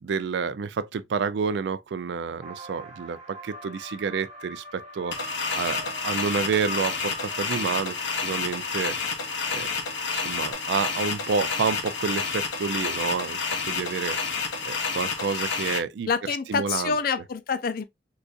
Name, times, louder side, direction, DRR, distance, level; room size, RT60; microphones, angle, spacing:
voice 1, 0.0-9.2 9.5-9.7 10.1-16.1 16.5-16.9, right 5 dB, 70° right, 0.3 m, -29 dB
sound 1, 2.4-10.5, equal, 35° right, 1.1 m, -42 dB
sound 2, 5.1-15.8, left 5 dB, 85° left, 0.7 m, -29 dB
voice 2, 16.0-17.8, left 5 dB, 50° left, 0.4 m, -27 dB
3.7 x 2.5 x 2.4 m
head